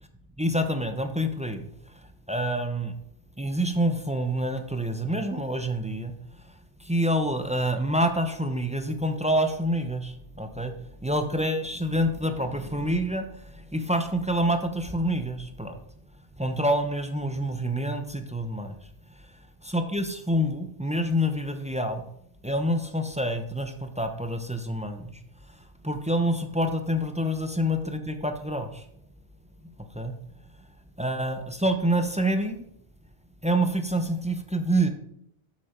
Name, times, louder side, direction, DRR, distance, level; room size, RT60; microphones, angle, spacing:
voice 1, 0.4-1.7 2.3-2.9 3.4-6.1 6.8-10.7 11.0-15.8 16.4-18.7 19.6-22.0 22.4-25.2 25.8-28.9 29.8-30.1 31.0-32.6 33.4-34.9, equal, 5° right, 7 dB, 0.7 m, -27 dB
12.0 x 7.3 x 4.5 m, 0.75 s
omnidirectional pair, 1.2 m